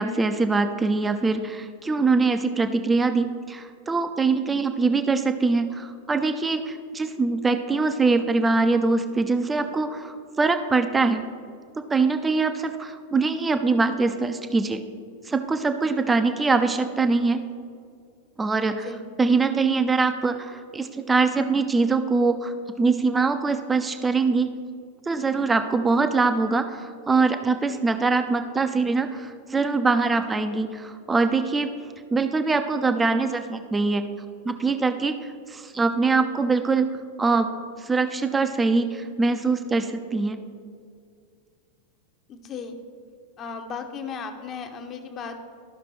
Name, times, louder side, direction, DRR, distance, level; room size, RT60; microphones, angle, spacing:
voice 1, 0.0-11.2 11.7-14.8 15.3-17.4 18.4-18.9 19.2-22.5 22.8-24.5 25.1-31.7 32.1-34.0 34.5-35.1 35.5-36.9 37.2-37.5 37.8-40.4, right 4 dB, 15° right, 8 dB, 0.5 m, -23 dB
voice 2, 42.3-42.8 43.4-45.4, left 5 dB, 30° left, 5 dB, 0.8 m, -35 dB
13.5 x 5.8 x 3.2 m, 2.2 s
figure-of-eight pair, 90°, 0 cm